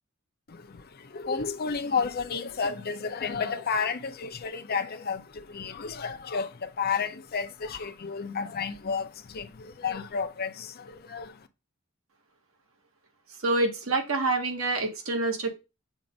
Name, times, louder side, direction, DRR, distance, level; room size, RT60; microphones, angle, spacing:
voice 1, 0.5-11.5, left 5 dB, 50° left, 0.6 m, -32 dB
voice 2, 13.4-15.5, right 2 dB, 70° right, 1.5 m, -27 dB
7.2 x 2.6 x 5.1 m
head